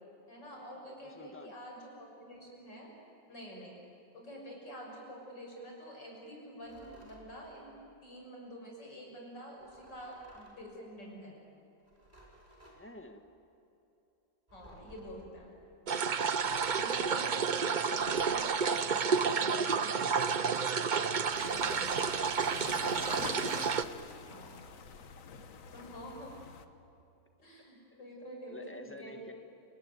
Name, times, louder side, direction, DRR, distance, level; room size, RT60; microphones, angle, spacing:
voice 1, 0.3-2.9 3.3-3.8 4.1-7.7 8.0-11.4 14.5-15.5 16.7-20.4 21.5-22.1 24.3-24.5 25.7-26.4 27.4-29.3, equal, 80° left, -1 dB, 7.2 m, -47 dB
voice 2, 0.8-1.5 12.7-13.3 21.5-22.3 23.3-24.3 27.6-28.0 28.5-29.3, left 1 dB, 5° left, 6 dB, 1.6 m, -52 dB
sound 1, 6.6-7.3 9.6-10.7 11.8-12.8 14.5-15.2 16.1-17.1 17.9-18.5, right 1 dB, 25° right, 5.5 m, -58 dB
sound 2, 15.9-23.8, right 6 dB, 90° right, 0.4 m, -30 dB
sound 3, 21.3-26.7, left 6 dB, 50° left, 1.4 m, -45 dB
29.5 x 20.5 x 9.4 m, 2.9 s
omnidirectional pair, 1.9 m